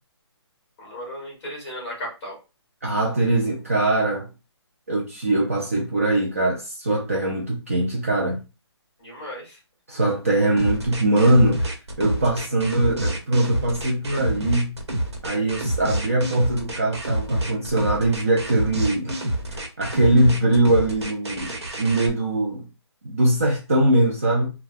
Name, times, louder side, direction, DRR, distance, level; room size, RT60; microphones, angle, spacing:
voice 1, 0.8-2.4 9.0-9.6, equal, 10° left, 1.5 m, -35 dB
voice 2, 2.8-4.3 4.9-8.4 9.9-14.7 15.2-19.2 19.5-22.6 23.0-24.5, right 1 dB, 30° right, 0.5 m, -22 dB
sound 1, 10.6-22.1, right 1 dB, 70° right, 1.2 m, -27 dB
3.8 x 2.2 x 2.6 m
hypercardioid pair, 175°, 15 cm